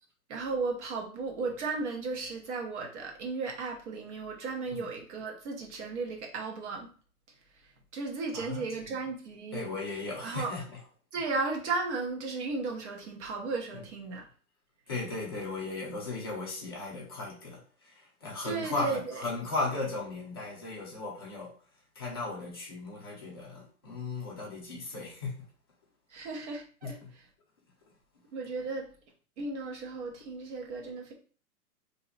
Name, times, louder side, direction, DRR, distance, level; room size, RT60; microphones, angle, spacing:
voice 1, 0.3-6.9 7.5-9.7 10.2-10.5 11.1-14.3 18.4-19.2 26.1-27.2 28.3-28.9 29.4-31.1, right 4 dB, 50° right, 1.1 m, -35 dB
voice 2, 8.3-8.9 9.5-10.8 13.7-13.9 14.9-21.5 22.0-25.4 26.8-27.1, left 3 dB, 20° left, 0.4 m, -36 dB
2.8 x 2.2 x 3.9 m
hypercardioid pair, 150°, 45 cm